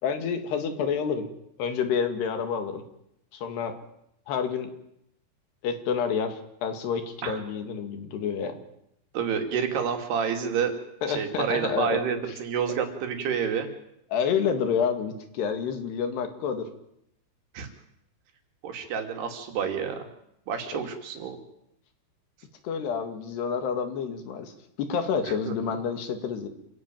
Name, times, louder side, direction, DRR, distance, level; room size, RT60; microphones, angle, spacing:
voice 1, 0.0-1.3 1.6-2.8 3.3-3.8 4.3-4.7 5.6-8.6 11.0-12.0 14.1-16.7 20.7-20.8 22.6-24.5 24.8-26.5, left 6 dB, 75° left, 8 dB, 4.2 m, -28 dB
voice 2, 9.1-10.7 11.1-13.7 17.5-17.7 18.6-20.1 20.5-21.4 25.2-25.5, right 7 dB, 75° right, 5 dB, 4.6 m, -29 dB
27.0 x 16.0 x 9.2 m, 0.79 s
omnidirectional pair, 4.8 m